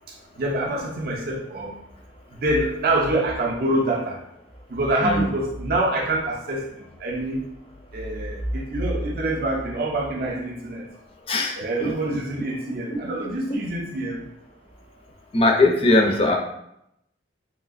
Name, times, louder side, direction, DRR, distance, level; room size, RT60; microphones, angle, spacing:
voice 1, 0.4-1.7 2.4-4.2 4.7-6.6 7.0-7.4 7.9-10.8 11.6-14.2, right 1 dB, 50° right, -1 dB, 0.4 m, -25 dB
voice 2, 15.3-16.4, left 2 dB, 30° left, 2 dB, 0.4 m, -19 dB
3.1 x 2.6 x 2.4 m, 0.78 s
head